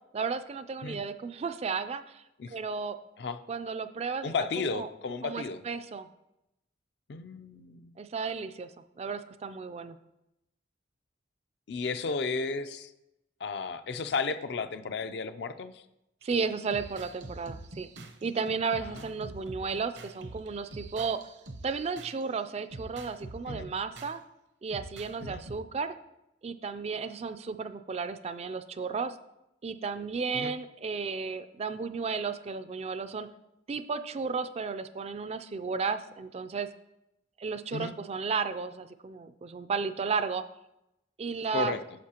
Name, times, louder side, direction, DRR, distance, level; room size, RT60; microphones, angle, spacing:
voice 1, 0.1-3.0 3.5-4.3 4.6-4.9 5.2-6.1 8.0-8.7 9.0-10.0 16.2-17.9 18.2-21.2 21.6-24.2 24.6-26.0 26.4-29.2 29.6-33.3 33.7-36.7 37.4-40.4 41.2-41.8, right 5 dB, 35° right, 11 dB, 0.3 m, -33 dB
voice 2, 4.2-5.6 7.1-7.9 11.7-12.9 13.4-15.8 18.8-19.3 23.5-23.7 25.2-25.4 30.3-30.5 37.7-37.9 41.5-41.8, left 4 dB, 65° left, 10 dB, 0.4 m, -34 dB
sound 1, 16.2-22.2 22.7-24.1 24.7-25.6, right 2 dB, 70° right, 0.8 m, -45 dB
9.3 x 6.7 x 2.9 m, 0.88 s
head